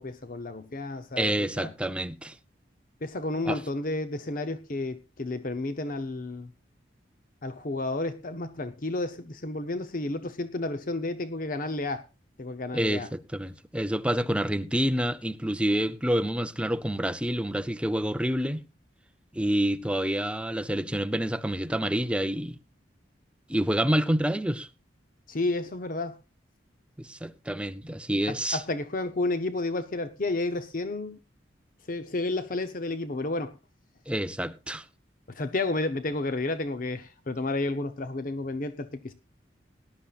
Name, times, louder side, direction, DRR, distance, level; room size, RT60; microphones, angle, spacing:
voice 1, 0.0-1.7 3.0-6.5 7.4-12.0 12.4-13.1 25.3-26.2 28.3-31.2 31.9-33.6 35.3-39.1, left 2 dB, 45° left, 0.8 m, -31 dB
voice 2, 1.2-2.4 3.4-3.6 12.7-18.7 19.3-22.6 23.5-24.7 27.0-28.6 34.1-34.9, right 1 dB, 5° right, 0.6 m, -28 dB
19.0 x 11.5 x 2.4 m
head